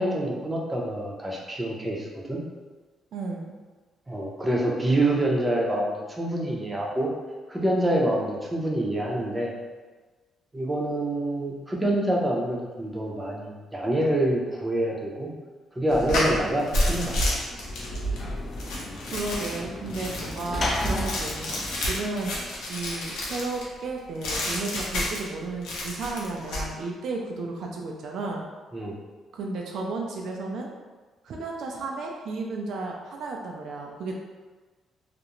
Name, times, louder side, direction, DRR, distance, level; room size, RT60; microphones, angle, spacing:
voice 1, 0.0-2.4 4.1-7.1 7.5-9.5 10.5-15.3 15.7-17.4 28.7-28.9, right 1 dB, 15° right, -2 dB, 0.5 m, -26 dB
voice 2, 3.1-3.5 19.1-22.3 22.7-28.4 29.3-30.7 31.2-34.1, right 3 dB, 70° right, 0 dB, 0.3 m, -33 dB
sound 1, 15.9-23.7 24.2-25.3 25.6-26.6, left 1 dB, 85° left, 0.6 m, -30 dB
Sliding door / Slam, 17.3-22.7, left 1 dB, 40° left, 0.4 m, -34 dB
2.4 x 2.0 x 2.9 m, 1.3 s
cardioid pair, 90°, 0 cm